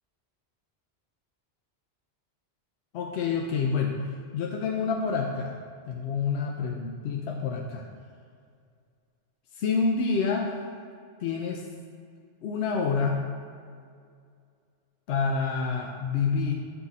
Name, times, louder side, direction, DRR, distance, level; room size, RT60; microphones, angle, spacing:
voice 1, 2.9-5.6 5.9-7.8 9.5-10.6 11.2-11.6 12.4-13.2 15.1-16.5, left 5 dB, 85° left, 0 dB, 0.9 m, -28 dB
7.7 x 4.6 x 4.1 m, 2.2 s
omnidirectional pair, 1.1 m